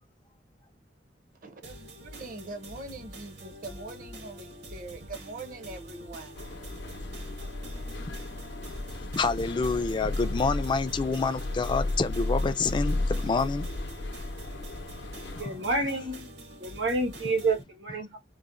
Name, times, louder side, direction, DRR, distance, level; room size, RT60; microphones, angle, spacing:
voice 1, 1.4-6.4, right 2 dB, 50° right, 0.6 m, -43 dB
sound 1, 1.6-17.6, right 1 dB, 75° right, 1.0 m, -46 dB
sound 2, 6.4-15.4, left 2 dB, 80° left, 0.6 m, -34 dB
voice 2, 9.1-13.7, left 4 dB, 25° left, 0.3 m, -27 dB
voice 3, 15.4-16.3 16.6-18.2, right 3 dB, 90° right, 1.3 m, -29 dB
3.9 x 2.0 x 2.4 m
head